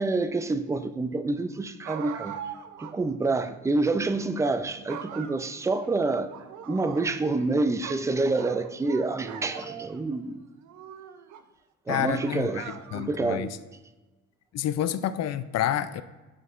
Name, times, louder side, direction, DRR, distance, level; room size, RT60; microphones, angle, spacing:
voice 1, 0.0-2.4 2.8-6.3 6.7-10.4 11.9-13.6, right 3 dB, 10° right, 0.3 m, -27 dB
sound 1, 1.8-3.0 3.3-3.4 4.3-4.5 4.9-5.9 6.3-7.5 7.8-10.0 10.6-11.4 11.9-13.2, right 9 dB, 70° right, 0.5 m, -41 dB
voice 2, 11.9-13.5 14.5-16.0, left 11 dB, 60° left, 0.4 m, -29 dB
7.8 x 5.4 x 2.5 m
cardioid pair, 90°, 30 cm